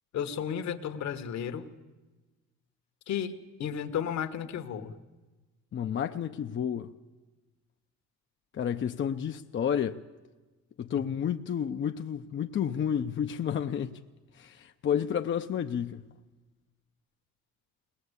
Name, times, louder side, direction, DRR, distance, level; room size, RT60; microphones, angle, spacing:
voice 1, 0.1-1.7 3.1-3.3 3.6-5.0, left 8 dB, 65° left, 1.7 m, -33 dB
voice 2, 5.7-6.9 8.5-10.0 10.8-14.0 14.4-16.1, left 8 dB, 40° left, 0.7 m, -31 dB
20.5 x 19.5 x 8.2 m
cardioid pair, 100°, 29 cm